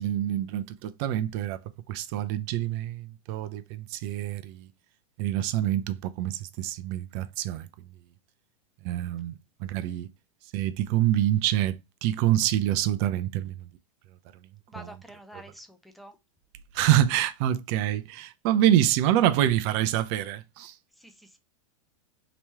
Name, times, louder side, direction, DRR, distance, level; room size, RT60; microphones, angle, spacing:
voice 1, 0.0-1.6 1.9-4.7 5.2-7.7 8.8-10.1 10.5-13.6 14.7-15.0 16.7-20.7, right 12 dB, 50° right, 0.5 m, -26 dB
voice 2, 14.7-16.2 20.9-21.4, equal, ahead, 0.5 m, -47 dB
3.0 x 3.0 x 3.4 m
hypercardioid pair, 115°, 18 cm